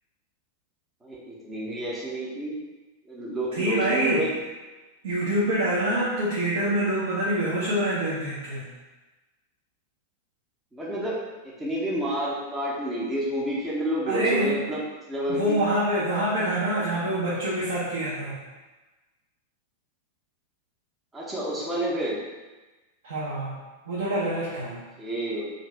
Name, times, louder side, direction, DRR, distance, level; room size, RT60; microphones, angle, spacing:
voice 1, 1.0-2.6 3.1-4.3 10.7-11.1 11.4-14.8 15.1-15.6 21.1-22.2 24.6-24.7 25.0-25.5, right 1 dB, 15° right, -6 dB, 0.7 m, -29 dB
voice 2, 3.5-4.3 5.0-8.7 14.1-14.6 15.3-18.4 23.0-23.6 23.9-24.8, right 1 dB, 60° right, -7 dB, 0.7 m, -26 dB
2.6 x 2.5 x 3.2 m, 1.2 s
figure-of-eight pair, 90°, 0 cm